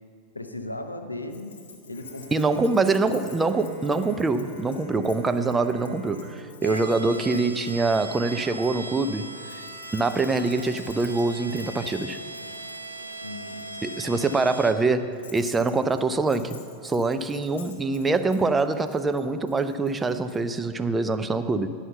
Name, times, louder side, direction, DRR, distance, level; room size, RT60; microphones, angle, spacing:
voice 1, 0.3-1.6 1.9-3.2 13.2-13.8 14.1-14.4, left 1 dB, 80° left, 7 dB, 0.6 m, -37 dB
Keys jangling, 1.3-8.7 9.4-20.4, left 5 dB, 65° left, 1.4 m, -50 dB
Bowed string instrument, 1.9-8.1, right 1 dB, 50° left, 1.5 m, -45 dB
voice 2, 2.3-9.3 9.9-12.2 13.8-21.7, right 3 dB, 15° right, 10 dB, 0.4 m, -24 dB
sound 1, 6.6-14.7, right 2 dB, 85° right, 0.6 m, -39 dB
11.0 x 5.6 x 6.7 m, 2.4 s
figure-of-eight pair, 90°, 0 cm